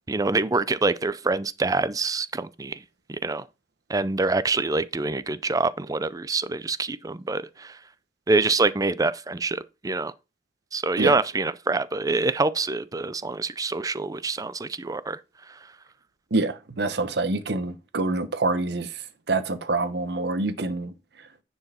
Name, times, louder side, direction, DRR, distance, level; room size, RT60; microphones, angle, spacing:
voice 1, 0.1-2.8 3.1-3.4 3.9-7.8 8.3-10.1 10.7-15.2 15.5-15.6, right 3 dB, 20° right, 0.5 m, -25 dB
voice 2, 16.3-18.9 19.3-20.9, right 3 dB, 65° right, 1.0 m, -26 dB
9.9 x 4.6 x 4.3 m
head